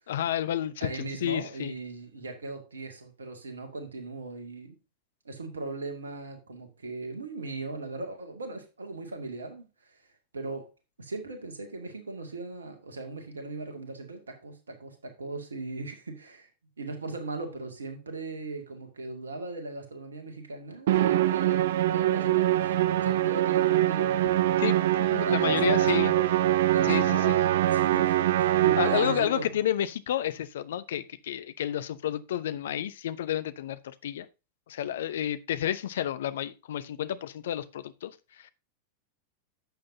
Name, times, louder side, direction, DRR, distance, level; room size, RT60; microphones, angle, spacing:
voice 1, 0.1-1.7 24.6-26.1 26.8-27.2 28.8-34.3 34.7-38.5, left 11 dB, 60° left, 0.7 m, -31 dB
voice 2, 0.8-4.7 5.2-10.0 10.3-10.7 11.0-16.5 16.8-24.7 25.2-26.2 26.7-29.4, right 3 dB, 75° right, 2.2 m, -38 dB
Musical instrument, 20.9-29.4, right 13 dB, 55° right, 0.5 m, -24 dB
11.5 x 7.6 x 2.7 m
figure-of-eight pair, 90°, 0 cm